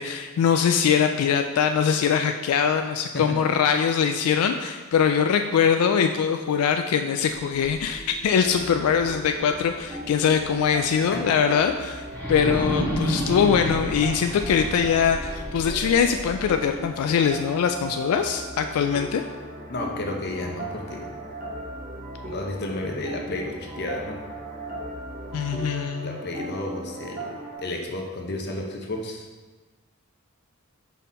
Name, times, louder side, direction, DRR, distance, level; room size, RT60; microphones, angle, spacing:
voice 1, 0.0-11.7 12.3-19.2 25.3-26.2, left 7 dB, 85° left, 9 dB, 0.3 m, -22 dB
sound 1, 7.1-10.1 10.5-10.6 12.0-17.1, equal, 10° left, 0.8 m, -32 dB
sound 2, 8.3-27.6, right 1 dB, 35° right, 0.9 m, -37 dB
voice 2, 19.7-21.1 22.2-24.2 26.0-29.3, left 2 dB, 50° left, 1 dB, 0.8 m, -32 dB
5.4 x 4.2 x 4.2 m, 1.3 s
head